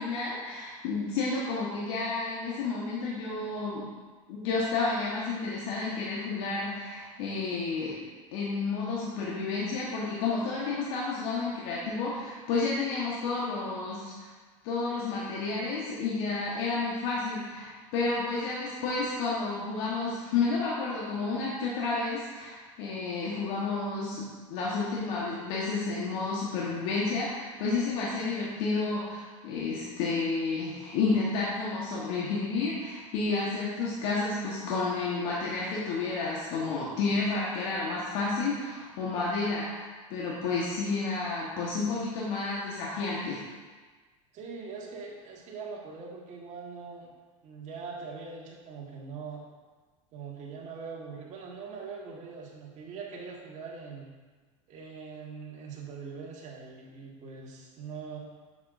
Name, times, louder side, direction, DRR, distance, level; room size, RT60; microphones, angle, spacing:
voice 1, 0.0-3.9 4.3-8.0 8.3-14.3 14.6-39.8 40.1-43.4, left 3 dB, 65° left, -6 dB, 1.3 m, -31 dB
voice 2, 44.3-47.1 47.4-49.4 50.1-54.1 54.7-58.2, right 5 dB, 45° right, -2 dB, 1.6 m, -42 dB
7.2 x 6.5 x 2.6 m, 1.4 s
hypercardioid pair, 95°, 18 cm